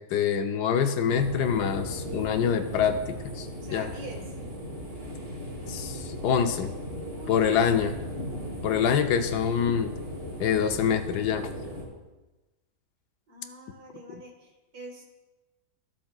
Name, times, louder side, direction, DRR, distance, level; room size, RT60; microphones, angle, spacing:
voice 1, 0.0-3.0 3.3-3.9 5.7-6.7 7.3-7.9 8.6-9.9 10.4-11.5 14.1-14.2, left 8 dB, 75° left, 8 dB, 1.1 m, -25 dB
sound 1, 1.1-11.8, equal, 40° right, 2.6 m, -37 dB
voice 2, 3.6-4.2 7.1-7.9 8.6-9.2 13.3-15.1, right 1 dB, 60° right, 1 dB, 2.0 m, -45 dB
15.0 x 7.6 x 2.3 m, 1.1 s
omnidirectional pair, 1.9 m